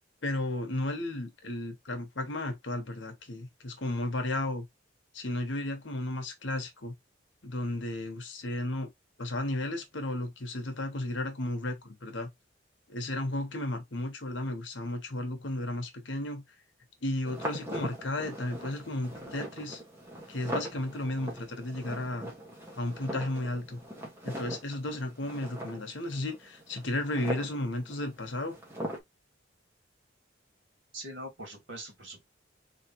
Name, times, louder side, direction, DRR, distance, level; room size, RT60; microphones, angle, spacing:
voice 1, 0.2-4.7 5.1-6.9 7.4-8.9 9.2-12.3 12.9-16.4 17.0-19.8 20.3-22.3 22.8-23.8 24.2-28.6, left 1 dB, 70° left, 1.2 m, -34 dB
sound 1, 17.3-29.0, right 1 dB, 15° right, 1.4 m, -41 dB
voice 2, 30.9-32.3, right 1 dB, 75° right, 2.4 m, -42 dB
3.9 x 3.3 x 2.9 m
head